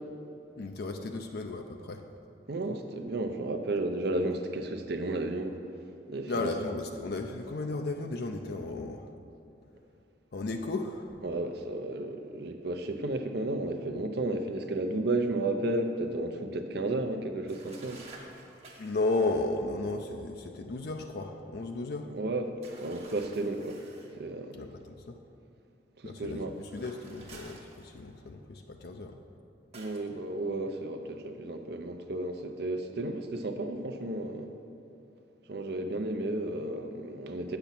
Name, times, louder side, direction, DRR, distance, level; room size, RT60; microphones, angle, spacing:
voice 1, 0.6-2.0 6.3-9.1 10.3-11.2 18.8-22.1 24.5-25.2 26.0-29.2, left 2 dB, 60° left, 4 dB, 0.5 m, -34 dB
voice 2, 2.5-5.6 6.1-6.5 11.2-18.0 22.1-23.8 24.2-24.6 26.0-26.5 29.7-34.5 35.5-37.6, right 2 dB, 65° right, 6 dB, 0.7 m, -33 dB
sound 1, 17.5-19.1 22.6-24.2 26.5-28.3 29.7-30.1, right 2 dB, 35° right, 1.3 m, -51 dB
8.2 x 6.9 x 5.9 m, 2.8 s
head